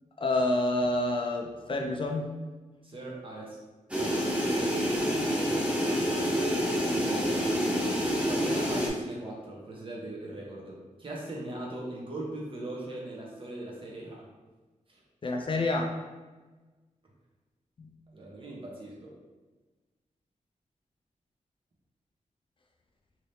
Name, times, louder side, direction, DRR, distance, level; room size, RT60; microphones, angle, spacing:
voice 1, 0.2-2.4 15.2-15.9 17.8-17.9, left 2 dB, 40° left, 2 dB, 0.4 m, -28 dB
voice 2, 2.8-3.6 4.0-4.4 6.8-7.4 8.3-14.3 14.9-15.0 18.1-19.1, right 1 dB, 40° right, -3 dB, 0.8 m, -40 dB
sound 1, 3.9-8.9, equal, 10° right, 0.6 m, -27 dB
3.2 x 2.8 x 2.6 m, 1.2 s
wide cardioid pair, 125°, 13 cm